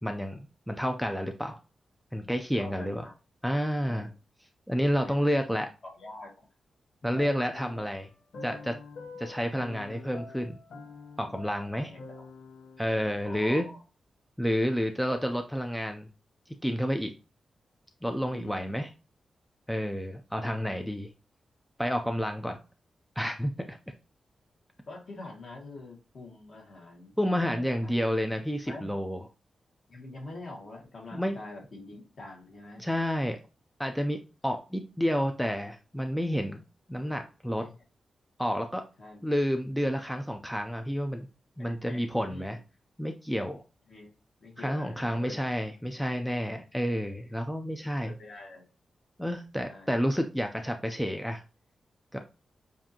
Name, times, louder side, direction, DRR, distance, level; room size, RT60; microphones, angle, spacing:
voice 1, 0.0-1.6 2.1-3.1 3.4-4.1 4.7-5.7 7.0-8.1 8.4-8.8 9.2-10.6 11.2-11.9 12.8-13.7 14.4-16.1 16.5-17.1 18.0-18.9 19.7-21.1 21.8-22.6 23.2-23.8 27.2-29.2 31.1-31.3 32.8-33.4 33.8-34.2 34.4-36.6 36.9-37.7 38.4-38.8 39.2-41.3 41.6-42.6 43.0-43.6 44.6-48.1 49.2-51.4 52.1-52.2, equal, ahead, 5 dB, 0.3 m, -30 dB
voice 2, 2.5-3.1 3.8-4.1 5.0-5.2 5.5-6.5 7.0-7.3 11.8-12.3 13.2-13.8 18.3-18.8 24.9-28.0 28.7-28.9 29.9-32.8 37.5-37.7 39.0-39.2 41.6-42.4 43.9-44.1 44.4-45.4 47.4-47.5 48.0-48.6 49.7-49.9, left 2 dB, 50° left, -1 dB, 1.7 m, -45 dB
sound 1, 7.1-13.5, left 3 dB, 70° left, 0.8 m, -46 dB
7.3 x 2.6 x 2.7 m, 0.32 s
wide cardioid pair, 170°, 0 cm